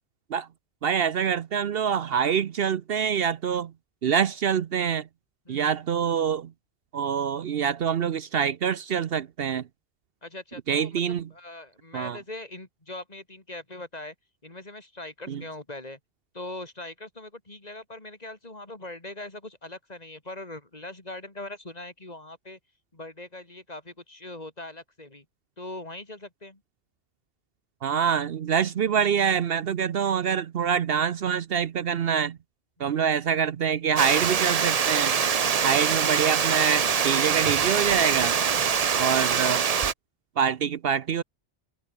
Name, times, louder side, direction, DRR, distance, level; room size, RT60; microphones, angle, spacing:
voice 1, 0.8-3.7 4.0-5.1 5.5-6.5 6.9-9.7 10.7-11.3 11.9-12.2 15.3-15.4 27.8-32.4 32.8-35.1 35.6-38.3 39.0-39.6 40.4-41.2, right 7 dB, 65° right, 0.9 m, -25 dB
voice 2, 10.2-14.1 14.4-16.0 16.3-22.6 22.9-25.2 25.6-26.6 32.8-33.1, left 2 dB, 35° left, 3.1 m, -41 dB
Water, 34.0-39.9, right 6 dB, 40° right, 0.7 m, -24 dB
omnidirectional pair, 1.1 m